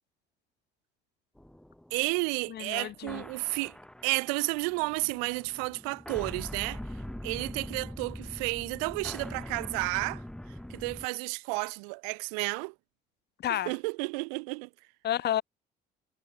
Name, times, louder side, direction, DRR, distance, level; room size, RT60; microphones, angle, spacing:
sound 1, 1.4-11.1, left 1 dB, 5° left, 5.1 m, -43 dB
voice 1, 1.9-3.8 4.0-6.8 7.2-10.2 10.7-12.7 13.5-14.7, right 37 dB, 85° right, 4.7 m, -32 dB
voice 2, 2.5-3.2 13.4-13.7 15.0-15.4, left 12 dB, 60° left, 2.3 m, -30 dB
supercardioid pair, 70°, 19 cm